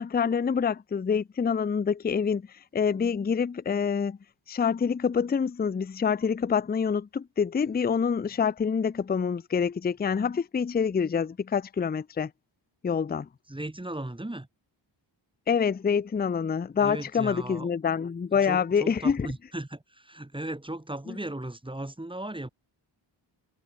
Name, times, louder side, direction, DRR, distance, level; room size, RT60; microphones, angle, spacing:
voice 1, 0.0-2.5 2.7-4.2 4.5-12.3 12.8-13.3 15.5-19.3 21.1-21.2, left 6 dB, 20° left, 0.4 m, -26 dB
voice 2, 13.5-14.5 16.8-17.7 18.4-22.5, right 1 dB, 10° right, 3.8 m, -36 dB
wide cardioid pair, 155°, 45 cm